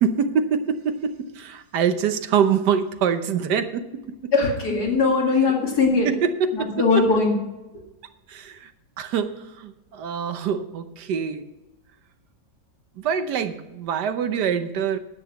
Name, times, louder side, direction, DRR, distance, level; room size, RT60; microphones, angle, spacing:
voice 1, 0.0-4.3 6.0-7.0 8.3-8.7 9.0-11.4 13.0-15.0, right 7 dB, 80° right, 9 dB, 1.5 m, -25 dB
voice 2, 4.3-6.1 6.5-7.4, left 4 dB, 70° left, 0 dB, 2.8 m, -20 dB
10.5 x 8.4 x 5.9 m, 1.0 s
omnidirectional pair, 1.8 m